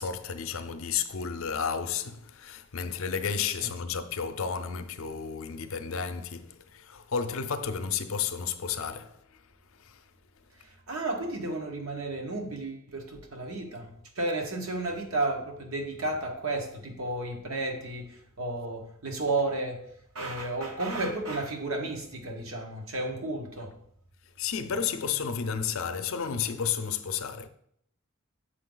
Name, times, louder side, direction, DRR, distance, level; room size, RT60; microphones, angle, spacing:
voice 1, 0.0-9.4 9.8-10.0 24.4-27.5, left 6 dB, 70° left, 0.5 m, -32 dB
voice 2, 10.6-19.9 20.1-23.8, right 2 dB, 75° right, 1.2 m, -33 dB
6.7 x 4.9 x 3.8 m
head